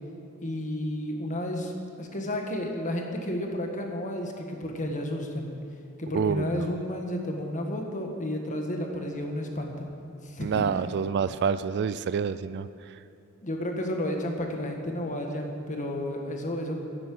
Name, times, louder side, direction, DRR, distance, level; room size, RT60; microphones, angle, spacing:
voice 1, 0.4-1.7 2.0-5.5 6.0-9.9 10.2-10.6 13.4-16.8, left 1 dB, 35° left, 2 dB, 1.5 m, -32 dB
voice 2, 6.1-6.6 10.4-12.7, right 6 dB, 50° right, 14 dB, 0.3 m, -27 dB
10.5 x 9.8 x 7.7 m, 2.8 s
head